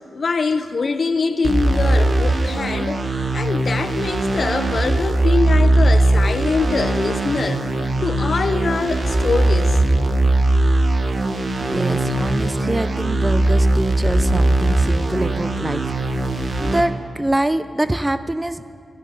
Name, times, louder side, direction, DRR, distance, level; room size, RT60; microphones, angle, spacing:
voice 1, 0.1-3.0 3.3-9.8, left 4 dB, 50° left, 0.9 m, -23 dB
sound 1, 1.4-16.8, right 2 dB, 50° right, 1.4 m, -19 dB
voice 2, 11.6-18.6, right 1 dB, 15° right, 0.6 m, -25 dB
16.0 x 13.0 x 5.5 m
cardioid pair, 75°, 0 cm